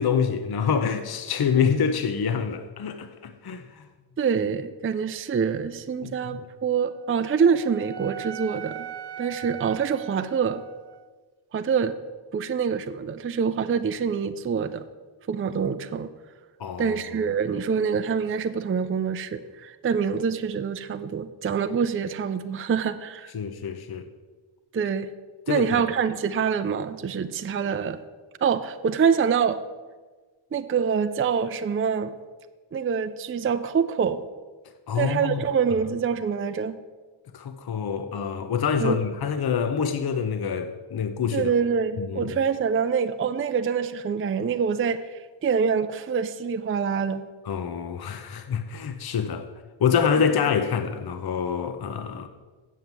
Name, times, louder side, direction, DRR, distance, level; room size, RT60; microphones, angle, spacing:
voice 1, 0.0-3.9 6.0-6.4 16.6-17.0 23.3-24.1 25.5-25.8 34.9-35.4 37.3-41.5 42.0-42.4 47.4-49.5 49.8-52.3, left 7 dB, 50° left, 0.7 m, -26 dB
voice 2, 4.2-8.9 9.2-10.6 11.5-11.9 12.3-14.8 15.3-16.1 16.8-23.3 24.7-25.1 25.5-28.0 28.4-29.6 30.5-32.1 32.7-34.2 35.0-36.8 38.8-39.0 41.3-47.2, right 6 dB, 30° right, 0.4 m, -25 dB
Wind instrument woodwind instrument, 6.9-11.1, right 9 dB, 55° right, 0.8 m, -40 dB
7.6 x 7.3 x 8.0 m
wide cardioid pair, 115°, 49 cm